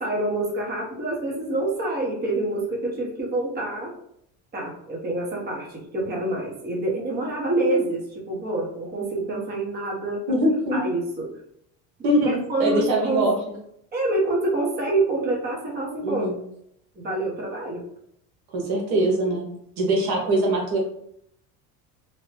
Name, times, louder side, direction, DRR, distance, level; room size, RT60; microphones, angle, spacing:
voice 1, 0.0-3.9 4.5-10.2 10.7-11.3 12.5-13.2 13.9-16.2 16.9-17.8, right 2 dB, 25° right, -3 dB, 1.0 m, -26 dB
voice 2, 10.3-10.8 12.0-13.3 16.0-16.4 18.5-19.5 19.8-20.8, right 1 dB, 75° right, -1 dB, 1.1 m, -22 dB
2.8 x 2.2 x 3.3 m, 0.72 s
supercardioid pair, 115°, 37 cm